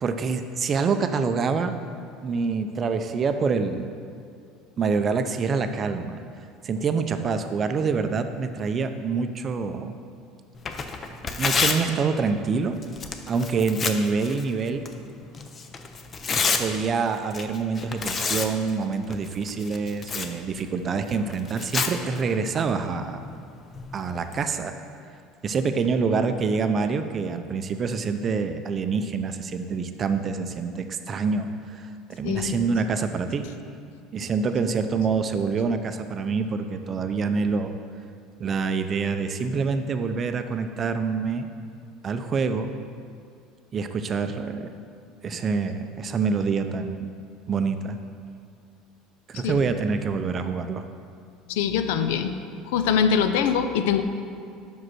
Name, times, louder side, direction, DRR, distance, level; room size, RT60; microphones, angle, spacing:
voice 1, 0.0-1.7 2.2-3.9 4.8-6.2 6.6-9.9 11.4-12.7 13.3-14.8 16.6-23.2 23.9-24.7 25.4-33.4 34.1-37.7 38.4-41.5 42.0-42.7 43.7-44.7 45.2-47.1 47.5-48.0 49.3-50.8, right 5 dB, 35° right, 8 dB, 0.4 m, -26 dB
Tearing, 10.5-24.4, left 4 dB, 30° left, 0.5 m, -32 dB
voice 2, 32.2-32.6 49.4-49.6 51.5-52.4 52.7-54.0, left 7 dB, 85° left, 9 dB, 0.4 m, -23 dB
5.4 x 4.9 x 6.2 m, 2.3 s
supercardioid pair, 120°, 0 cm